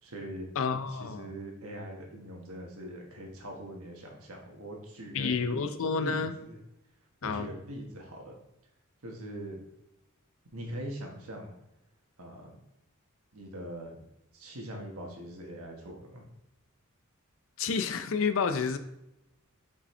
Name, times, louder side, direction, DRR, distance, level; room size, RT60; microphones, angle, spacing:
voice 1, 0.0-0.5 0.9-5.4 6.0-6.6 7.2-8.4 9.0-9.6 10.5-11.5 12.2-12.6 13.3-14.0 14.3-16.2, right 1 dB, 80° right, 0 dB, 1.4 m, -42 dB
voice 2, 0.6-1.3 5.1-6.3 7.2-7.5 17.6-18.8, left 5 dB, 65° left, 9 dB, 0.5 m, -29 dB
5.4 x 5.3 x 3.2 m, 0.86 s
head